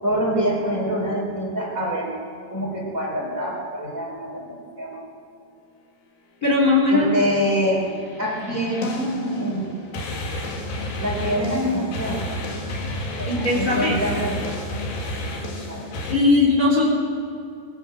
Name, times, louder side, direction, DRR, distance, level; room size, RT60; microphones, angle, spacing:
voice 1, 0.0-2.1 2.5-5.0 6.9-7.9 8.2-9.8 11.0-12.3 13.1-14.6 15.4-15.8, equal, 20° right, -3 dB, 4.8 m, -25 dB
voice 2, 6.4-7.1 13.3-13.9 16.1-16.9, left 3 dB, 20° left, -2 dB, 3.6 m, -18 dB
sound 1, 7.8-16.1, left 1 dB, 80° left, 4.9 m, -31 dB
23.0 x 21.0 x 7.9 m, 2.6 s
omnidirectional pair, 4.7 m